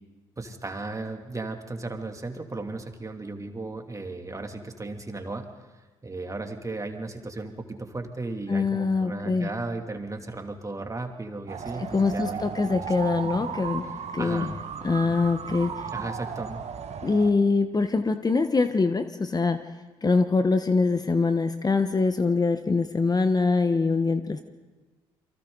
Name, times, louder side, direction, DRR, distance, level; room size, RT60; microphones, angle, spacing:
voice 1, 0.4-5.5 6.0-13.1 13.4-13.5 14.2-14.6 15.9-16.6, right 2 dB, 25° right, 4 dB, 2.8 m, -35 dB
voice 2, 8.5-9.5 11.9-13.8 14.1-14.5 14.8-15.9 17.0-19.6 20.0-24.4, left 4 dB, 30° left, 9 dB, 1.2 m, -24 dB
sound 1, 11.5-17.3, right 7 dB, 55° right, 1.7 m, -35 dB
29.0 x 23.5 x 4.0 m, 1.2 s
hypercardioid pair, 50°, 13 cm